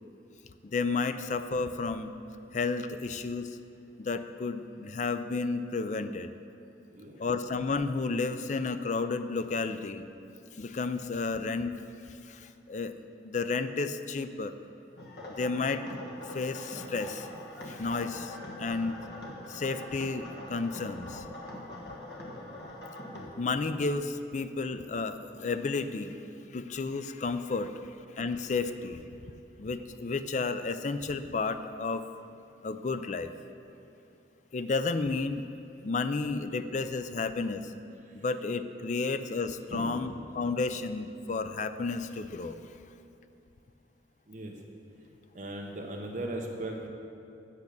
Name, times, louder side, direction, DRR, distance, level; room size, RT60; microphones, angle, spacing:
voice 1, 0.6-2.1 2.5-3.6 4.0-6.3 7.2-10.1 10.6-11.7 12.3-12.9 13.2-14.5 15.4-15.8 16.3-17.3 17.7-19.0 19.5-21.2 23.1-26.2 26.5-27.8 28.2-29.1 29.6-32.0 32.6-33.3 34.5-35.4 35.8-37.7 38.1-42.6, left 4 dB, 40° left, 10 dB, 0.4 m, -32 dB
sound 1, 15.0-23.3, left 1 dB, 60° left, 1.5 m, -43 dB
voice 2, 39.7-40.1 44.3-44.5 45.3-46.9, right 1 dB, 45° right, 0 dB, 1.1 m, -38 dB
8.3 x 7.2 x 6.7 m, 2.7 s
head